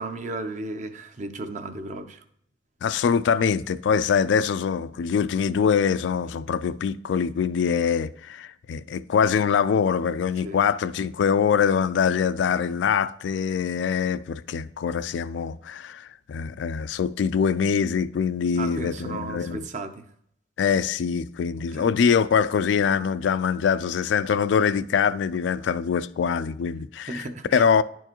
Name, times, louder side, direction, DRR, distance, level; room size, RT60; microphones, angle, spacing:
voice 1, 0.0-2.2 10.4-10.7 18.6-20.0 21.6-21.9 27.1-27.7, right 2 dB, 40° right, 0.6 m, -35 dB
voice 2, 2.8-19.6 20.6-27.3 27.5-27.8, left 6 dB, 75° left, 0.3 m, -24 dB
10.5 x 4.6 x 2.9 m
head